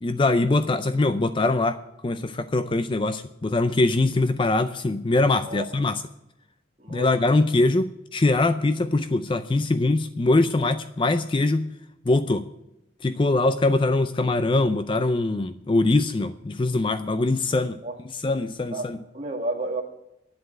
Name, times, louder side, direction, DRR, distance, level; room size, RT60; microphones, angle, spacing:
voice 1, 0.0-6.0 6.9-11.7 12.1-12.5 13.0-17.8 18.1-19.0, left 2 dB, 25° left, 11 dB, 0.4 m, -22 dB
voice 2, 6.8-7.1 17.8-18.0 18.7-19.8, right 2 dB, 30° right, 0 dB, 1.9 m, -31 dB
10.5 x 7.9 x 9.0 m, 0.88 s
head